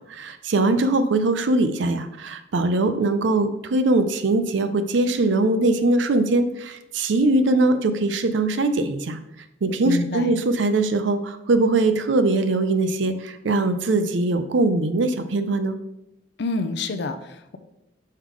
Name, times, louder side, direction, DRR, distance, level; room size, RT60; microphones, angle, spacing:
voice 1, 0.1-9.2 9.6-15.8, right 2 dB, 75° right, 10 dB, 0.5 m, -21 dB
voice 2, 9.8-10.3 16.4-17.6, left 2 dB, 60° left, 10 dB, 0.5 m, -28 dB
5.6 x 3.7 x 4.6 m, 0.86 s
head